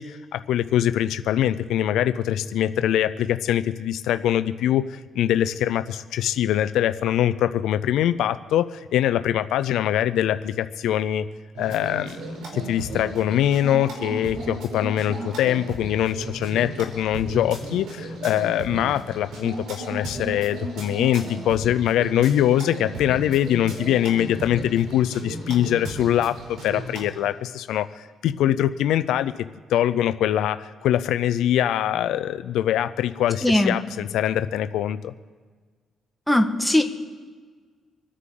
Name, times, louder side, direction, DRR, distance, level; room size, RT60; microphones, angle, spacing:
voice 1, 0.0-11.3 11.6-12.2 12.5-29.3 29.7-35.1, left 11 dB, 85° left, 12 dB, 0.5 m, -23 dB
sound 1, 11.6-27.1, right 2 dB, 85° right, 4.1 m, -35 dB
voice 2, 33.4-33.7 36.3-36.8, left 1 dB, ahead, 4 dB, 1.5 m, -19 dB
26.5 x 9.8 x 3.8 m, 1.5 s
cardioid pair, 90°, 0 cm